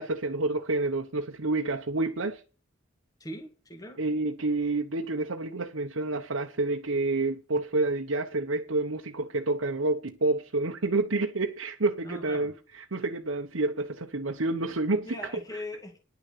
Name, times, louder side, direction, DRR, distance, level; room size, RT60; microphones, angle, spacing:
voice 1, 0.0-2.4 4.0-15.2, right 2 dB, 80° right, 1.1 m, -29 dB
voice 2, 3.2-4.0 12.0-12.5 15.0-16.0, left 1 dB, 20° left, 2.1 m, -40 dB
11.0 x 6.6 x 7.5 m
head